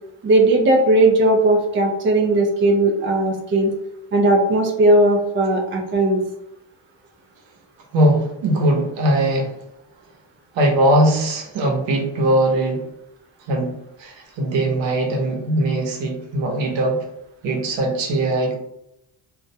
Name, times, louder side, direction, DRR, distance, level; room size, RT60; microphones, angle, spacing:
voice 1, 0.2-3.7 4.1-6.2, right 2 dB, 30° right, 0 dB, 0.4 m, -17 dB
voice 2, 7.9-9.5 10.5-12.9 13.5-17.0 17.4-18.6, right 1 dB, 80° right, 0 dB, 0.8 m, -20 dB
2.3 x 2.1 x 2.6 m, 0.82 s
cardioid pair, 160°, 45 cm